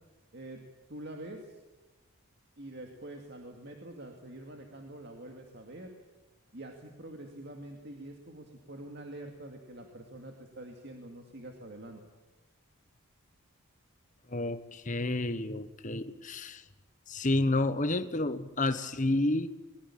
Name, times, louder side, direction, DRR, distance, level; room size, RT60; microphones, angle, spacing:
voice 1, 0.9-1.6 2.6-5.9 6.5-12.0, right 1 dB, 50° right, 3 dB, 2.3 m, -45 dB
voice 2, 14.3-16.6 17.1-19.5, left 2 dB, 35° left, 11 dB, 1.2 m, -30 dB
22.5 x 20.5 x 8.7 m, 1.2 s
head